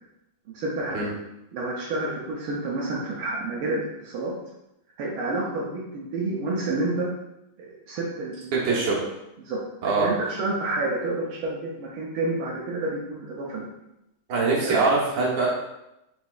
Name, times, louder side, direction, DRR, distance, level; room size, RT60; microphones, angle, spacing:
voice 1, 0.5-1.1 1.5-4.3 5.0-7.1 7.6-8.8 9.4-13.7 14.6-14.8, right 2 dB, 80° right, -5 dB, 1.6 m, -29 dB
voice 2, 8.6-9.0 9.8-10.1 14.3-15.5, right 3 dB, 65° right, -4 dB, 1.8 m, -23 dB
4.3 x 4.1 x 2.4 m, 0.87 s
omnidirectional pair, 2.3 m